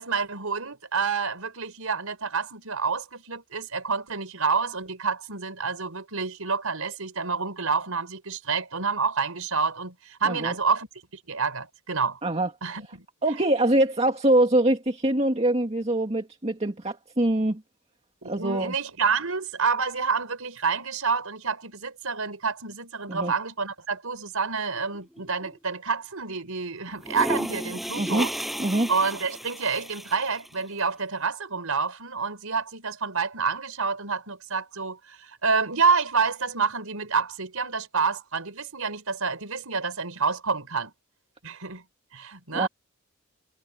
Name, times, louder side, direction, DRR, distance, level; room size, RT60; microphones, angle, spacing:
voice 1, 0.0-10.9 11.3-12.2 12.6-13.1 18.2-28.5 28.9-40.9 41.4-41.8 42.1-42.7, right 5 dB, 85° right, 4.4 m, -28 dB
voice 2, 13.2-17.6 18.2-18.7 23.1-23.3 28.0-28.3 28.6-28.9 42.5-42.7, right 1 dB, 30° right, 2.0 m, -24 dB
sound 1, 24.7-25.5 26.9-30.6, equal, ahead, 6.8 m, -33 dB
head